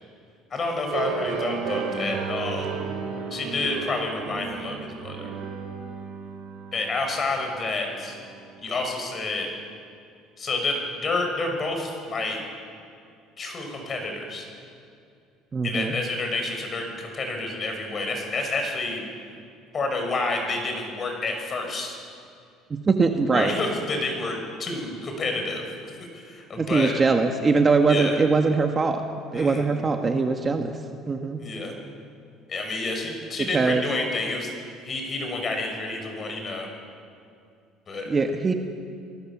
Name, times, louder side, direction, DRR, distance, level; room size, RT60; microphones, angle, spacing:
voice 1, 0.5-2.8 3.3-5.3 6.7-8.2 8.6-9.5 10.4-12.4 13.4-14.5 15.6-19.0 19.7-22.0 23.3-26.9 27.9-28.1 29.3-29.7 31.4-31.7 32.5-34.5 34.8-36.7 37.9-38.1, left 2 dB, 30° left, 3 dB, 5.7 m, -29 dB
sound 1, 0.9-8.7, right 6 dB, 75° right, 4.2 m, -33 dB
voice 2, 15.5-15.9 22.7-23.5 26.6-29.0 29.3-30.7 31.1-31.4 33.5-33.8 38.1-38.5, right 4 dB, 25° right, 4 dB, 1.4 m, -22 dB
28.0 x 19.0 x 7.4 m, 2.4 s
cardioid pair, 130°, 0 cm